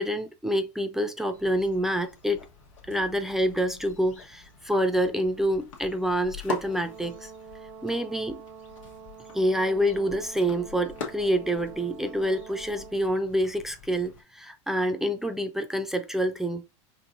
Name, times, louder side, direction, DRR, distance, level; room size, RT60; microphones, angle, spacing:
voice 1, 0.0-2.4 2.9-7.3 7.8-8.4 9.3-16.6, equal, ahead, 0.5 m, -27 dB
sound 1, 1.3-14.2, left 5 dB, 90° left, 1.2 m, -44 dB
Brass instrument, 6.6-13.0, right 6 dB, 80° right, 0.9 m, -46 dB
4.6 x 3.2 x 2.5 m
supercardioid pair, 110°, 16 cm